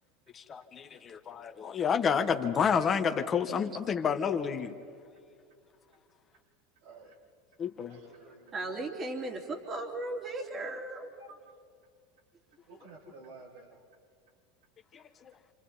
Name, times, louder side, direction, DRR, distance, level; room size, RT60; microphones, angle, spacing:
voice 1, 0.3-4.7 7.6-8.0 14.9-15.0, left 6 dB, 30° left, 5 dB, 1.6 m, -29 dB
voice 2, 6.8-7.1 7.9-8.6 11.3-11.4 12.7-13.7, right 4 dB, 80° right, -2 dB, 6.9 m, -51 dB
voice 3, 8.5-11.1, right 2 dB, 30° right, 2 dB, 3.3 m, -36 dB
29.0 x 27.0 x 4.4 m, 2.3 s
hypercardioid pair, 100°, 0 cm